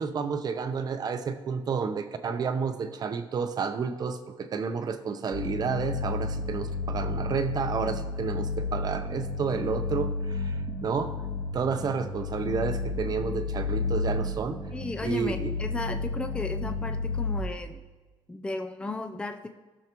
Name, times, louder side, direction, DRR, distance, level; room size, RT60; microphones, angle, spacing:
voice 1, 0.0-11.1 11.5-14.6 15.0-15.5, right 5 dB, 45° right, 8 dB, 0.8 m, -30 dB
sound 1, 5.3-17.4, left 3 dB, 60° left, 1.2 m, -32 dB
voice 2, 14.7-17.8 18.3-19.5, left 2 dB, 10° left, 5 dB, 0.5 m, -35 dB
18.0 x 6.4 x 3.0 m, 1.3 s
cardioid pair, 150°, 9 cm